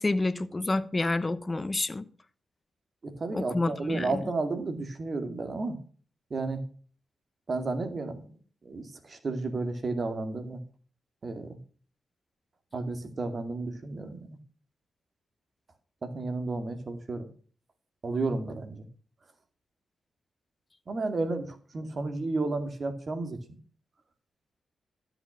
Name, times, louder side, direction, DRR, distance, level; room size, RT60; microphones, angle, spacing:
voice 1, 0.0-2.0 3.3-4.2, left 2 dB, 30° left, 1.0 m, -29 dB
voice 2, 3.0-5.8 6.3-6.6 7.5-8.2 8.6-10.6 11.2-11.6 12.7-14.4 16.0-17.2 18.0-18.9 20.9-23.4, right 3 dB, 50° right, 2.3 m, -32 dB
13.0 x 6.0 x 6.1 m
supercardioid pair, 45°, 0 cm